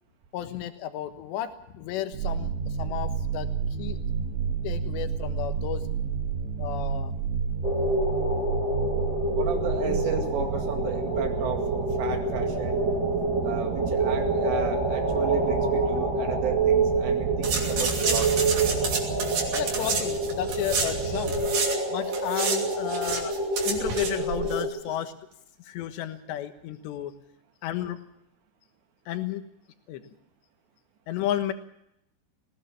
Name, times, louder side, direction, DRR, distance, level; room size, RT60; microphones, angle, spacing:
voice 1, 0.3-3.5 3.8-4.0 4.6-5.8 6.6-7.1 9.9-10.2 19.5-21.4 21.9-23.4 23.6-25.1 25.6-27.1 27.6-28.0 29.1-29.4 29.9-30.0 31.1-31.5, left 11 dB, 75° left, 8 dB, 3.4 m, -32 dB
sound 1, 2.1-21.5, right 6 dB, 90° right, 4.6 m, -31 dB
sound 2, 7.6-24.7, right 2 dB, 15° right, 1.9 m, -27 dB
voice 2, 9.3-12.8 13.4-18.5, right 6 dB, 70° right, 4 dB, 4.3 m, -34 dB
sound 3, 17.4-21.8 22.0-24.6 24.9-25.0, right 5 dB, 50° right, 4.1 m, -30 dB
20.5 x 18.0 x 7.1 m, 0.79 s
omnidirectional pair, 5.4 m